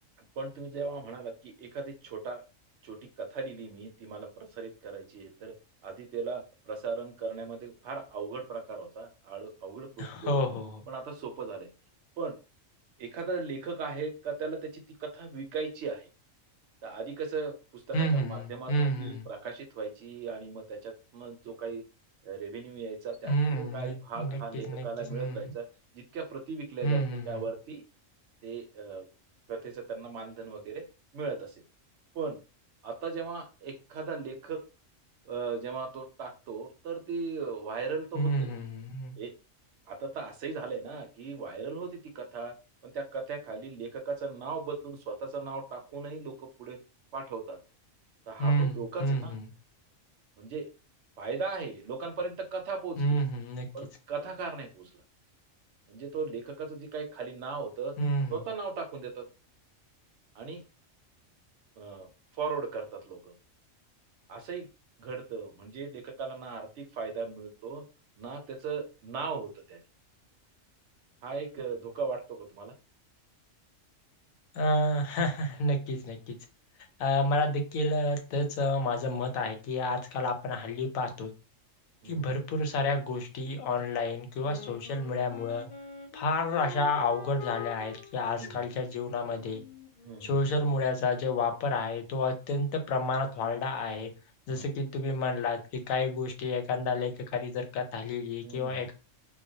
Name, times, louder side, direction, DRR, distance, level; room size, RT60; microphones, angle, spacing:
voice 1, 0.4-2.4 2.8-5.5 5.8-10.4 10.9-11.7 12.2-12.3 13.0-16.1 16.8-21.8 22.2-25.7 25.9-27.8 28.4-29.1 29.5-30.8 31.1-31.5 32.1-32.4 32.8-34.6 35.3-38.5 39.2-39.3 39.9-42.5 42.8-46.8 47.1-47.6 48.3-49.4 50.4-50.7 51.2-53.2 53.7-54.9 55.9-57.9 58.3-59.2 60.4-60.6 61.8-62.1 62.3-63.3 64.3-64.7 65.0-67.8 68.2-69.8 71.2-72.7 82.0-82.3 88.4-88.6 90.0-90.4 94.5-94.7 98.4-98.9, right 4 dB, 70° right, 4 dB, 0.8 m, -37 dB
voice 2, 10.0-10.8 17.9-19.3 23.2-25.4 26.8-27.4 38.2-39.1 48.4-49.4 53.0-53.7 58.0-58.4 74.5-76.4 77.0-81.3 82.0-85.7 86.1-89.6 90.2-94.1 94.5-98.9, left 1 dB, 90° left, 5 dB, 1.0 m, -30 dB
Wind instrument woodwind instrument, 84.4-91.0, left 5 dB, 65° left, 0.5 m, -46 dB
2.3 x 2.1 x 2.6 m, 0.32 s
omnidirectional pair, 1.4 m